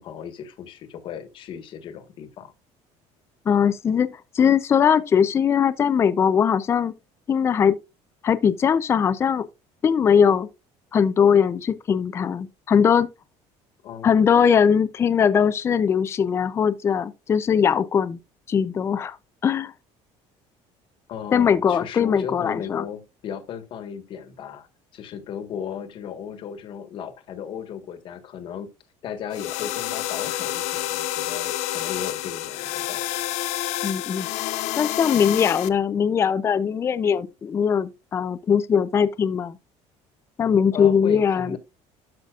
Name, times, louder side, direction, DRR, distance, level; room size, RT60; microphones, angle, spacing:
voice 1, 0.0-2.5 13.8-14.2 21.1-24.7 24.9-28.7 29.0-33.1 40.7-41.6, left 8 dB, 45° left, 1.4 m, -36 dB
voice 2, 3.5-6.9 7.3-7.8 8.2-9.4 9.8-10.5 10.9-13.1 14.0-18.2 18.5-19.2 19.4-19.7 21.3-22.8 33.8-34.3 34.8-39.5 40.4-41.6, left 7 dB, 20° left, 0.4 m, -20 dB
sound 1, 29.3-35.7, left 14 dB, 65° left, 0.7 m, -29 dB
12.5 x 5.7 x 2.4 m
cardioid pair, 175°, 12 cm